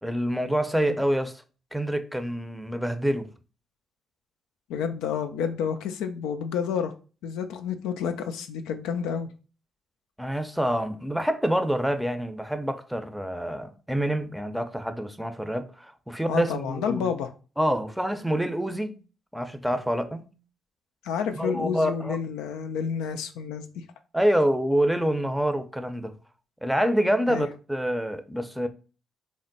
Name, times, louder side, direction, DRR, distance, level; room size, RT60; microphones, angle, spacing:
voice 1, 0.0-1.3 1.7-3.3 10.2-17.1 17.6-19.0 19.3-20.3 21.4-22.2 24.1-26.1 26.6-28.7, equal, 5° right, 0.5 m, -26 dB
voice 2, 4.7-6.9 7.2-9.3 16.3-17.3 21.0-23.8 27.3-27.5, left 7 dB, 80° left, 0.3 m, -30 dB
3.4 x 2.1 x 3.9 m
hypercardioid pair, 50°, 0 cm